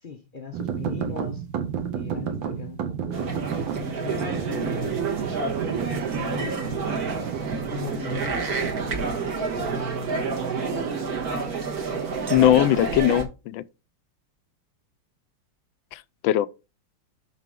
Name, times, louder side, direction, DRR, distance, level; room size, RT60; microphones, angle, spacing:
voice 1, 0.0-1.5 1.9-3.4 4.0-5.2 5.5-7.1 7.7-11.1, left 5 dB, 55° left, 0.5 m, -40 dB
sound 1, 0.5-8.9, right 7 dB, 80° right, 1.8 m, -32 dB
sound 2, 3.1-13.2, right 4 dB, 55° right, 1.9 m, -28 dB
voice 2, 12.3-13.6 15.9-16.5, left 13 dB, 85° left, 1.3 m, -20 dB
11.5 x 4.1 x 3.6 m
omnidirectional pair, 2.1 m